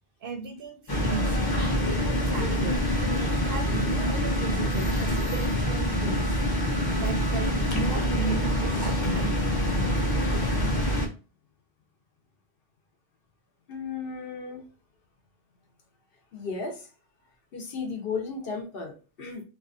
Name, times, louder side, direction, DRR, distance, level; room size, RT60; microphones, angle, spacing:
voice 1, 0.2-1.3 2.3-2.8 3.3-6.3 7.0-9.4, right 4 dB, 65° right, 0.7 m, -35 dB
sound 1, 0.9-11.1, equal, 25° left, 0.5 m, -26 dB
voice 2, 13.7-14.6 16.3-16.9 17.5-19.4, left 4 dB, 60° left, 0.9 m, -34 dB
2.6 x 2.3 x 2.4 m
omnidirectional pair, 1.2 m